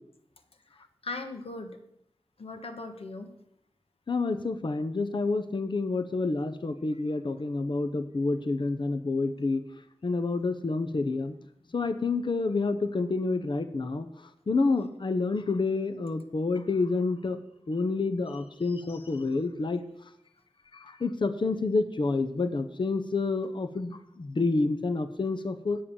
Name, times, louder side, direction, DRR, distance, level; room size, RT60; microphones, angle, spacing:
voice 1, 1.0-1.8 2.4-3.3 18.3-19.1, left 2 dB, 70° left, 6 dB, 1.4 m, -40 dB
voice 2, 4.1-9.6 10.0-11.3 11.7-14.1 14.5-17.4 17.7-19.8 20.7-25.8, left 3 dB, 50° left, 9 dB, 0.8 m, -28 dB
8.6 x 7.6 x 7.0 m, 0.77 s
wide cardioid pair, 80°, 10 cm